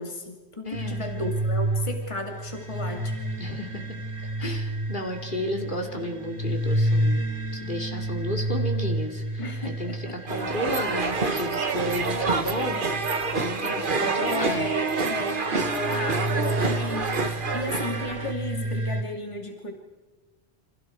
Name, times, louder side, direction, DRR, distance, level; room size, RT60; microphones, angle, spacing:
voice 1, 0.0-3.2 4.4-4.6 9.4-10.2 12.3-12.5 14.3-19.7, left 1 dB, 25° left, 2 dB, 2.6 m, -34 dB
voice 2, 0.6-1.1 3.4-4.0 4.4-13.1 13.4-14.7 15.5-15.7, equal, 50° left, 2 dB, 3.0 m, -33 dB
sound 1, 0.7-19.0, right 1 dB, 85° right, 3.4 m, -31 dB
sound 2, 10.3-18.3, right 4 dB, 50° right, 1.6 m, -27 dB
29.5 x 27.0 x 4.7 m, 1.2 s
omnidirectional pair, 1.1 m